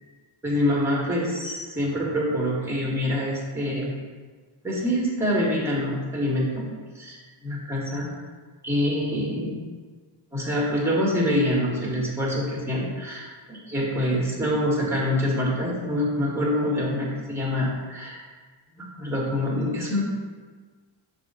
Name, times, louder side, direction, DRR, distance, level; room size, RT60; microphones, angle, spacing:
voice 1, 0.4-3.9 4.6-6.6 6.9-8.1 8.6-9.6 10.3-18.2 18.8-20.0, left 1 dB, 5° right, -4 dB, 1.6 m, -25 dB
6.6 x 2.6 x 5.5 m, 1.4 s
cardioid pair, 125°, 49 cm